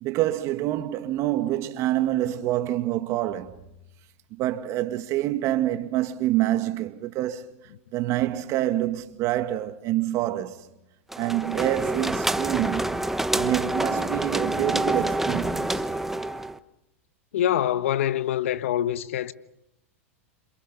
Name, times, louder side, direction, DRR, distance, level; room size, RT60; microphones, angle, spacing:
voice 1, 0.0-3.6 4.3-7.5 7.9-10.6 11.2-13.0 13.3-15.8, right 14 dB, 45° right, 2.0 m, -26 dB
sound 1, 11.1-16.6, right 1 dB, 5° right, 1.1 m, -27 dB
voice 2, 17.3-19.3, left 11 dB, 70° left, 1.2 m, -25 dB
28.5 x 27.5 x 5.6 m
hypercardioid pair, 105°, 7 cm